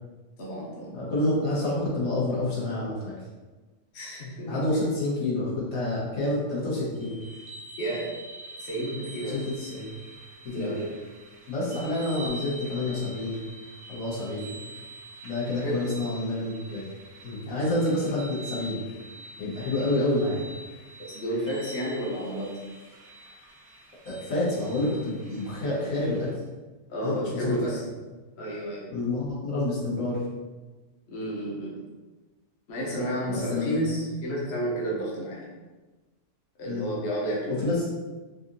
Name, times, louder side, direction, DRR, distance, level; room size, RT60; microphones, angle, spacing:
voice 1, 0.4-1.0 3.9-4.6 7.8-8.1 8.6-9.4 10.5-10.9 15.6-15.8 21.1-22.5 26.9-27.8 28.3-28.8 31.1-31.8 32.7-35.5 36.6-37.6, right 1 dB, 60° left, -5 dB, 1.0 m, -31 dB
voice 2, 0.9-3.1 4.5-7.2 9.3-9.9 10.4-10.7 11.5-13.4 13.9-14.6 15.2-16.8 17.2-18.8 19.4-20.5 24.0-26.3 27.0-27.7 28.9-30.2 33.3-33.8 36.6-36.9 37.5-37.8, left 2 dB, 85° left, -7 dB, 1.6 m, -28 dB
sound 1, 6.9-26.3, right 1 dB, 70° right, 1.0 m, -45 dB
4.1 x 2.7 x 2.6 m, 1.2 s
omnidirectional pair, 1.3 m